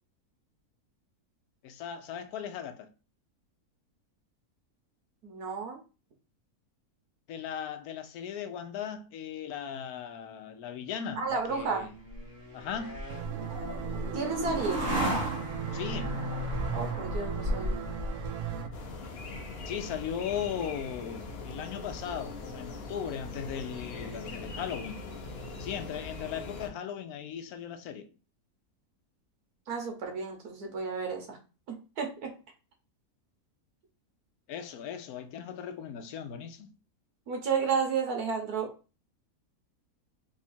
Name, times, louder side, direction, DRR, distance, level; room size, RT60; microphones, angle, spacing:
voice 1, 1.6-2.9 7.3-11.9 12.5-13.0 15.7-16.2 19.7-25.0 25.6-28.1 34.5-36.7, left 8 dB, 80° left, 1.1 m, -37 dB
voice 2, 5.2-5.8 11.2-11.9 14.1-14.8 16.7-17.8 29.7-31.4 31.7-32.3 37.3-38.7, right 5 dB, 80° right, 1.5 m, -32 dB
sound 1, 11.5-18.9, equal, 30° right, 1.5 m, -34 dB
sound 2, 13.1-18.7, right 9 dB, 65° right, 0.9 m, -38 dB
sound 3, 18.7-26.7, left 3 dB, 50° left, 0.8 m, -41 dB
3.6 x 2.4 x 4.1 m
omnidirectional pair, 1.6 m